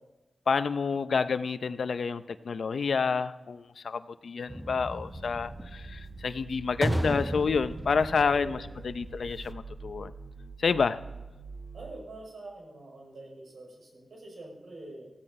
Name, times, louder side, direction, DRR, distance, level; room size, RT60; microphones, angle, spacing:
voice 1, 0.5-10.1 10.6-11.0, left 5 dB, 70° left, 12 dB, 0.6 m, -29 dB
sound 1, 4.5-9.5, right 1 dB, 10° right, 0.4 m, -35 dB
sound 2, 5.1-11.9, right 4 dB, 30° right, 3.7 m, -45 dB
voice 2, 8.2-8.5 11.7-15.1, right 2 dB, 70° right, -1 dB, 6.1 m, -45 dB
16.0 x 15.5 x 5.4 m, 1.1 s
wide cardioid pair, 160°, 0 cm